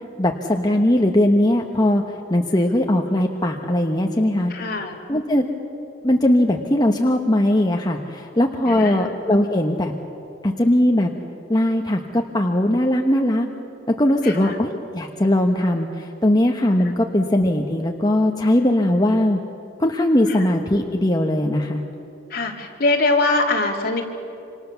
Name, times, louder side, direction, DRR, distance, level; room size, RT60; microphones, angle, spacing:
voice 1, 0.2-2.0 2.3-4.5 5.1-5.5 6.0-9.9 10.4-11.1 11.5-13.5 13.9-19.4 19.8-21.8, left 1 dB, 20° left, 2 dB, 1.2 m, -19 dB
voice 2, 4.5-5.0 8.7-9.1 14.2-14.6 20.3-20.5 22.3-24.0, left 2 dB, 55° left, 0 dB, 3.4 m, -22 dB
27.0 x 26.5 x 7.0 m, 2.8 s
head